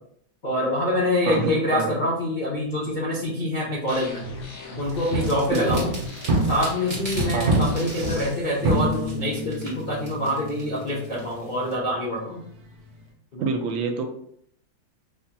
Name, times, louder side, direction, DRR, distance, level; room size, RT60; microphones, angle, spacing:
voice 1, 0.4-4.2 4.8-5.9 6.4-12.4 13.3-13.5, left 1 dB, 65° left, -6 dB, 0.4 m, -25 dB
voice 2, 1.2-2.0 5.5-5.8 7.3-7.6 13.4-14.1, right 4 dB, 80° right, 5 dB, 1.3 m, -26 dB
sound 1, 3.9-8.3, equal, 80° left, 1.6 m, -37 dB
sound 2, 4.9-11.7, right 1 dB, 20° right, 1.3 m, -40 dB
sound 3, 5.1-6.9 7.2-13.0, right 1 dB, 60° right, 1.0 m, -28 dB
5.5 x 2.8 x 2.2 m, 0.67 s
omnidirectional pair, 2.2 m